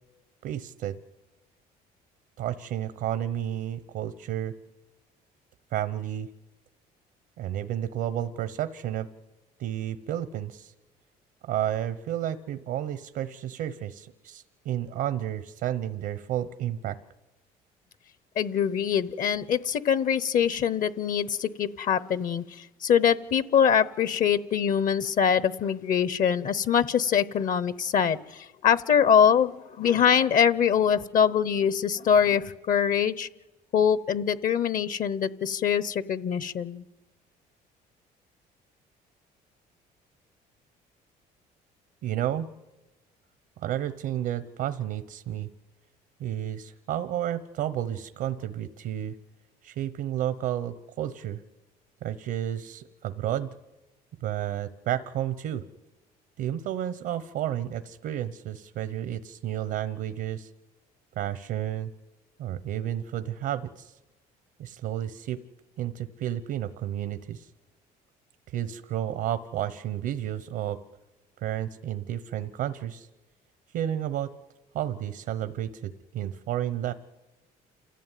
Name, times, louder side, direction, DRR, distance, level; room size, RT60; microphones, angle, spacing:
voice 1, 0.4-1.0 2.4-4.5 5.7-6.3 7.4-9.1 9.6-10.7 11.4-17.0 42.0-42.5 43.6-45.5 46.2-49.1 49.6-51.4 52.0-53.5 54.2-55.6 56.4-60.5 61.2-61.9 62.4-63.9 64.6-65.4 65.8-67.5 68.5-70.8 71.4-73.1 73.7-74.3 74.7-76.9, right 11 dB, 75° right, 12 dB, 1.0 m, -31 dB
voice 2, 18.4-33.3 33.7-36.8, left 8 dB, 55° left, 17 dB, 0.9 m, -24 dB
28.0 x 14.5 x 9.2 m, 1.1 s
cardioid pair, 110°, 17 cm